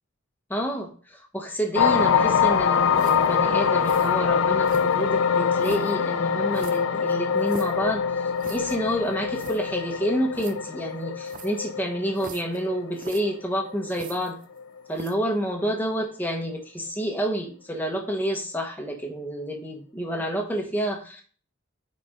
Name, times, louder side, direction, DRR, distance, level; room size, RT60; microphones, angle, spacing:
voice 1, 0.5-14.4 14.9-21.2, equal, 10° left, 1 dB, 1.2 m, -29 dB
sound 1, 1.8-14.1 14.6-14.8, left 6 dB, 65° left, 0.4 m, -24 dB
sound 2, 2.9-3.4 3.8-4.1 4.6-5.1 5.6-6.0 6.5-7.8 8.4-8.8 9.1-9.2 9.3-9.6 10.3-10.5 11.3-11.6 12.2-12.6 12.9-13.2 13.9-14.6 14.9-15.3, right 5 dB, 40° right, 0.6 m, -42 dB
9.5 x 4.5 x 3.7 m, 0.42 s
head